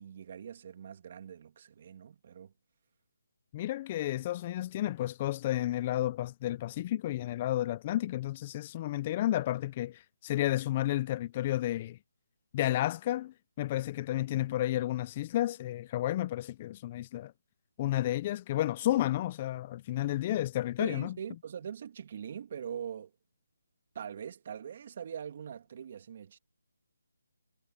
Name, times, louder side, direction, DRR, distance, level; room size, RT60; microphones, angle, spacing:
voice 1, 0.0-2.5 20.8-23.1 23.9-26.4, right 8 dB, 40° right, 2.7 m, -42 dB
voice 2, 3.5-12.0 12.5-17.3 17.8-21.2, left 14 dB, 25° left, 0.5 m, -31 dB
hypercardioid pair, 165°, 0 cm